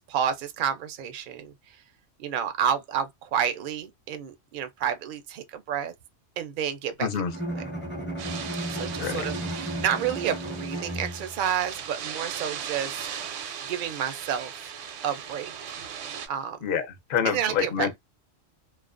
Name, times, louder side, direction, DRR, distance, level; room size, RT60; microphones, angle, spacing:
voice 1, 0.1-1.5 2.2-5.9 6.4-7.1 8.7-13.1 13.7-14.5 15.0-15.8 16.3-16.6 17.3-18.0, right 8 dB, 60° right, 0.6 m, -30 dB
voice 2, 7.0-7.4 9.0-9.3 16.6-18.0, left 7 dB, 55° left, 0.7 m, -27 dB
Bowed string instrument, 7.2-11.5, right 1 dB, 10° left, 0.6 m, -34 dB
sound 1, 8.2-16.3, right 8 dB, 80° right, 0.9 m, -38 dB
2.4 x 2.1 x 2.4 m
omnidirectional pair, 1.3 m